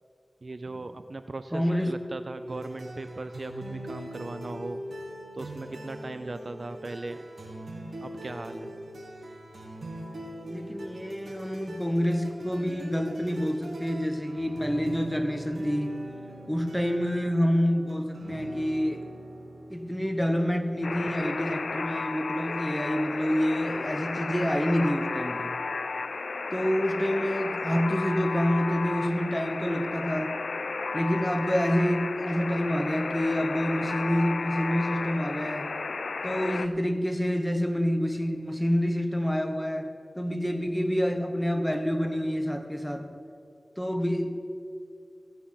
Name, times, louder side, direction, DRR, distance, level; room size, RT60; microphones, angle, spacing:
voice 1, 0.4-4.8 5.3-7.2 8.0-8.7, right 2 dB, 60° right, 10 dB, 0.4 m, -38 dB
voice 2, 1.5-1.9 10.4-16.0 16.5-19.1 19.7-25.6 26.5-30.4 30.9-35.7 36.2-39.9 40.2-43.1 43.8-44.4, equal, 5° left, 6 dB, 1.1 m, -27 dB
sound 1, 2.5-21.8, right 1 dB, 90° right, 1.8 m, -41 dB
Alarm, 20.8-36.7, left 4 dB, 85° left, 0.4 m, -33 dB
15.5 x 8.0 x 5.7 m, 2.4 s
wide cardioid pair, 50°, 0 cm